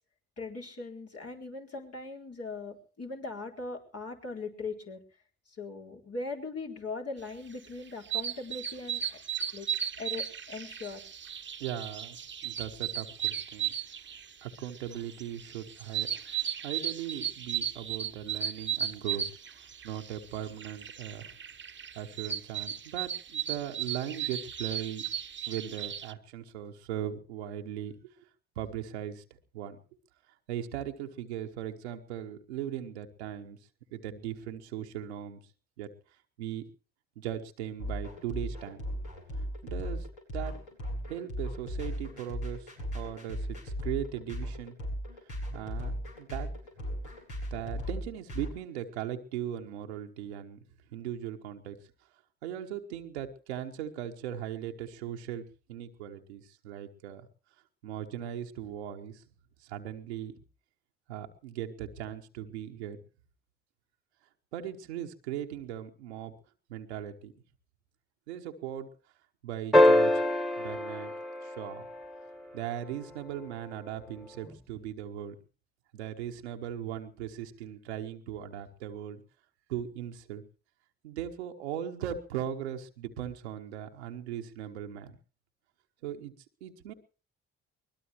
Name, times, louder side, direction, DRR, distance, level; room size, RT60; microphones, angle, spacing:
voice 1, 0.4-5.0 5.6-9.2 9.5-9.7 10.0-11.0, left 3 dB, 50° left, 1 dB, 4.3 m, -40 dB
sound 1, 7.5-26.1, right 9 dB, 35° right, 1.1 m, -36 dB
voice 2, 11.6-12.2 12.4-13.7 14.4-19.3 19.5-21.3 21.9-25.0 25.5-28.1 28.6-29.2 29.5-29.8 30.5-33.6 33.9-35.4 35.8-35.9 36.4-36.7 37.2-38.8 39.6-40.1 40.3-40.6 41.1-44.7 45.5-46.5 47.5-50.6 50.9-51.8 52.4-57.3 57.8-59.2 59.6-60.4 61.1-63.0 64.5-66.3 66.7-67.3 68.3-68.9 69.4-70.2 70.6-71.1 71.4-71.9 72.5-75.3 75.9-79.2 79.7-80.4 81.0-85.2 86.0-86.3 86.6-86.9, right 10 dB, 90° right, 4 dB, 1.1 m, -38 dB
sound 2, 37.8-48.5, equal, 75° left, 6.9 m, -36 dB
sound 3, 69.7-72.3 74.5-74.6, left 1 dB, ahead, 1.9 m, -24 dB
22.0 x 20.0 x 3.0 m, 0.38 s
hypercardioid pair, 45°, 32 cm